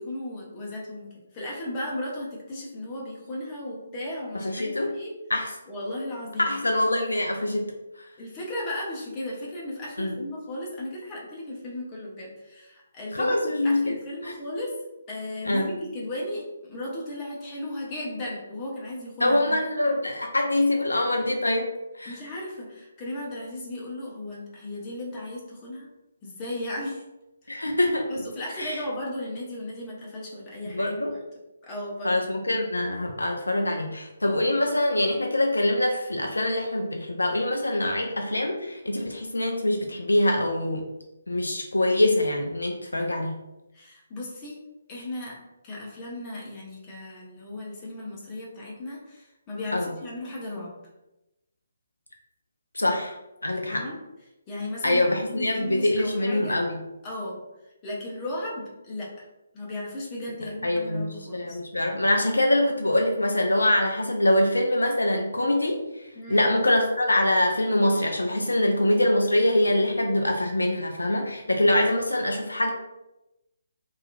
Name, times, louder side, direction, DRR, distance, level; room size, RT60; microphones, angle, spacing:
voice 1, 0.0-5.1 5.7-6.5 8.2-14.8 15.1-19.6 22.1-25.9 26.2-27.0 27.4-27.6 28.1-31.2 31.6-32.2 43.7-44.6 44.9-45.4 45.6-50.7 53.6-54.0 54.5-56.6 57.0-57.4 57.8-59.2 59.5-61.5 66.1-66.4 71.5-71.6, left 1 dB, 20° left, -4 dB, 0.8 m, -35 dB
voice 2, 4.3-4.9 5.3-5.5 6.4-7.7 10.0-10.2 13.1-13.9 14.2-14.3 15.5-15.7 19.2-22.2 27.5-28.1 28.6-28.8 30.7-31.1 32.0-40.8 41.3-43.4 49.7-49.9 52.7-53.1 53.4-53.8 54.8-56.8 60.6-65.8 66.3-72.7, left 1 dB, 75° left, 2 dB, 0.3 m, -24 dB
2.8 x 2.4 x 2.5 m, 0.95 s
figure-of-eight pair, 140°, 0 cm